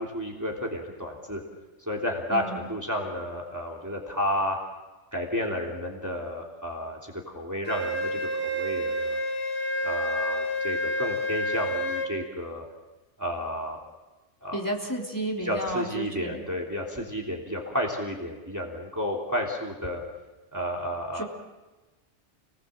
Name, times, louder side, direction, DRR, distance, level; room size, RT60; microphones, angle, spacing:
voice 1, 0.0-1.4 1.8-4.6 5.1-9.2 9.8-12.6 13.2-13.8 14.4-14.6 15.4-20.0 20.5-21.2, equal, 15° right, -1 dB, 3.2 m, -31 dB
voice 2, 2.3-2.6 14.5-16.4 21.1-21.2, right 1 dB, 15° left, -2 dB, 3.7 m, -32 dB
Wind instrument woodwind instrument, 7.7-12.1, equal, 45° left, 3.3 m, -29 dB
30.0 x 19.5 x 7.7 m, 1.1 s
omnidirectional pair, 1.2 m